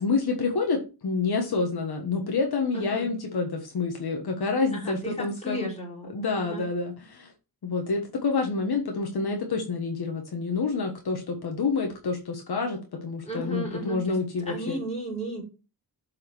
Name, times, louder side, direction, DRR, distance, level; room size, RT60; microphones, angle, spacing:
voice 1, 0.0-5.7 6.1-7.3 7.6-14.8, left 4 dB, 75° left, 3 dB, 1.6 m, -28 dB
voice 2, 2.7-3.1 4.7-6.7 13.2-14.2 14.5-15.4, right 1 dB, 15° left, -3 dB, 4.5 m, -35 dB
7.7 x 4.9 x 4.6 m, 0.31 s
wide cardioid pair, 95°, 38 cm